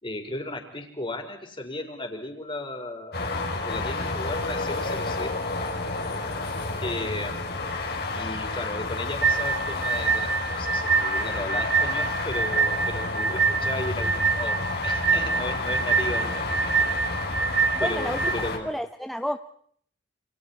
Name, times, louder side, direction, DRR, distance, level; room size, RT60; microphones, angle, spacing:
voice 1, 0.0-3.3 3.5-5.4 6.8-7.5 8.1-10.3 10.6-16.9 17.8-18.7, left 2 dB, 30° left, 4 dB, 5.0 m, -35 dB
sound 1, 3.1-18.6, left 3 dB, 60° left, 4.2 m, -30 dB
sound 2, 9.2-18.4, right 5 dB, 65° right, 3.9 m, -25 dB
voice 2, 17.7-19.4, equal, ahead, 7 dB, 0.9 m, -31 dB
29.0 x 28.0 x 4.4 m, 0.63 s
head